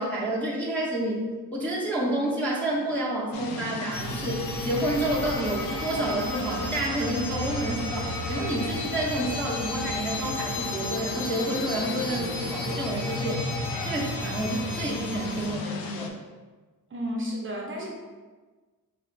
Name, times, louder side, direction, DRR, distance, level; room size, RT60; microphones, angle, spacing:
voice 1, 0.0-13.4 13.8-16.1, right 1 dB, 5° left, -6 dB, 0.5 m, -29 dB
sound 1, 3.3-16.1, left 4 dB, 80° left, 0.6 m, -38 dB
sound 2, 3.9-15.5, left 1 dB, 40° left, 1.0 m, -33 dB
voice 2, 16.9-17.9, equal, 35° right, -1 dB, 0.6 m, -32 dB
4.0 x 2.9 x 3.2 m, 1.3 s
wide cardioid pair, 150°, 35 cm